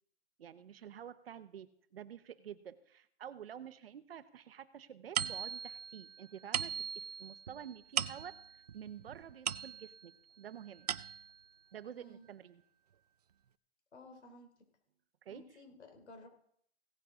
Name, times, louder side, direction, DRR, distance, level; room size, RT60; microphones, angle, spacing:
voice 1, 0.4-10.9 11.7-12.6 15.2-15.4, right 9 dB, 60° right, 13 dB, 1.1 m, -49 dB
sound 1, 5.2-10.1 10.6-11.5, right 8 dB, 40° right, 0.4 m, -39 dB
voice 2, 11.9-12.3 13.9-14.5 15.3-16.3, left 2 dB, 90° left, 4 dB, 3.4 m, -54 dB
17.0 x 9.5 x 3.8 m, 0.68 s
hypercardioid pair, 160°, 33 cm